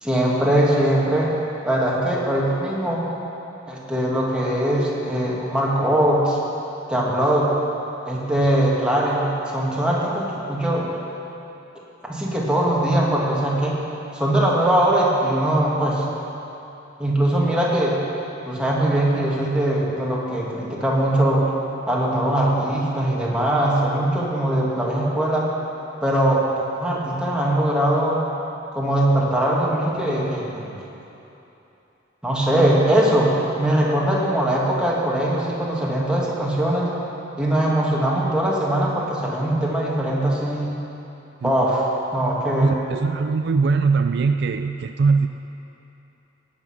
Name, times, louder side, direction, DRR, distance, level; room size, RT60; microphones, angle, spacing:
voice 1, 0.0-1.4 1.6-3.1 3.7-6.4 6.9-7.5 8.1-10.9 12.0-13.8 14.1-16.0 17.0-17.9 18.5-21.5 21.9-25.5 26.0-26.4 26.8-28.2 28.7-30.8 32.2-33.3 33.6-36.9 37.4-40.7 41.4-42.8, right 1 dB, 5° right, -5 dB, 2.1 m, -21 dB
voice 2, 42.6-45.3, right 4 dB, 60° right, 8 dB, 0.4 m, -21 dB
17.5 x 8.5 x 5.8 m, 3.0 s
head